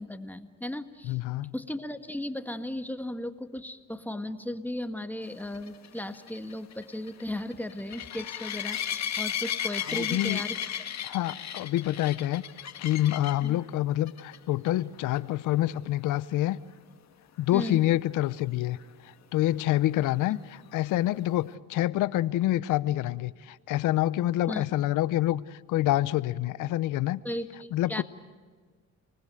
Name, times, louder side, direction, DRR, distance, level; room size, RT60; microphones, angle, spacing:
voice 1, 0.0-1.2 1.5-10.6 13.4-13.6 17.5-17.8 20.3-20.4 24.5-24.6 27.2-27.5 27.9-28.0, left 1 dB, 5° left, 8 dB, 1.7 m, -36 dB
voice 2, 1.0-1.5 9.9-10.4 11.0-12.4 12.8-16.6 17.4-18.8 19.0-27.2 27.7-28.0, left 14 dB, 90° left, 17 dB, 0.7 m, -27 dB
sound 1, 5.5-13.5 14.1-14.4 14.7-14.8 15.1-15.2 18.8-18.9, left 9 dB, 65° left, 1.9 m, -34 dB
30.0 x 20.0 x 7.7 m, 1.5 s
cardioid pair, 90°, 30 cm